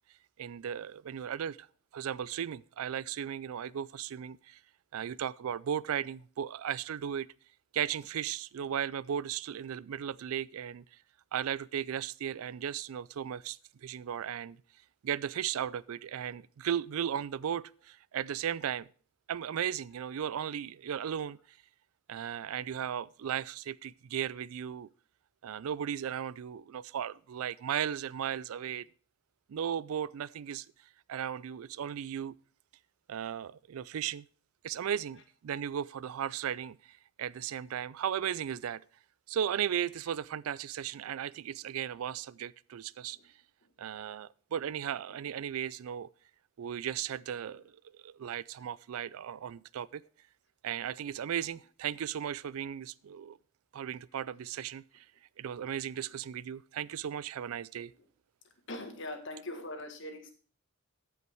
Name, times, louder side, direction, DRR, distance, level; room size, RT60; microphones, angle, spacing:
voice 1, 0.4-1.7 1.9-4.6 4.9-7.3 7.7-10.8 11.3-14.6 15.0-18.9 19.3-21.6 22.1-24.9 25.4-28.9 29.5-30.7 31.1-32.3 33.1-34.3 34.6-38.8 39.3-43.2 43.8-46.1 46.6-50.0 50.6-53.4 53.7-55.1 55.4-57.9, right 9 dB, 80° right, 0.4 m, -36 dB
voice 2, 58.7-60.3, left 1 dB, 55° left, 1.8 m, -42 dB
14.0 x 5.8 x 4.5 m
head